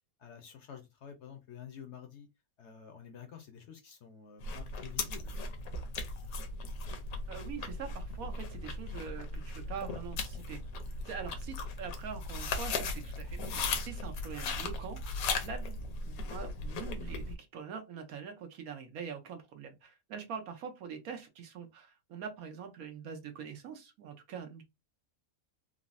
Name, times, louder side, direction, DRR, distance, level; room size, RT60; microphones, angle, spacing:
voice 1, 0.2-2.3 2.6-5.4, left 8 dB, 65° left, 0.8 m, -49 dB
sound 1, 4.4-17.4, left 3 dB, 80° left, 1.1 m, -37 dB
voice 2, 7.3-10.6 11.0-15.2 15.4-15.8 16.0-24.6, right 7 dB, 75° right, 1.2 m, -44 dB
3.7 x 2.0 x 2.4 m
omnidirectional pair, 1.5 m